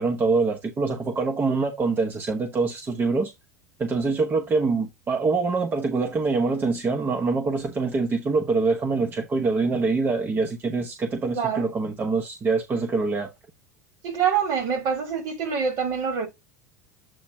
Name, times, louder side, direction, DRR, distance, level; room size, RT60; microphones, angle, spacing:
voice 1, 0.0-3.3 3.8-13.3, right 4 dB, 25° right, 1.0 m, -24 dB
voice 2, 11.4-11.7 14.0-16.3, right 7 dB, 50° right, 2.3 m, -25 dB
7.8 x 3.1 x 4.7 m
figure-of-eight pair, 75°, 9 cm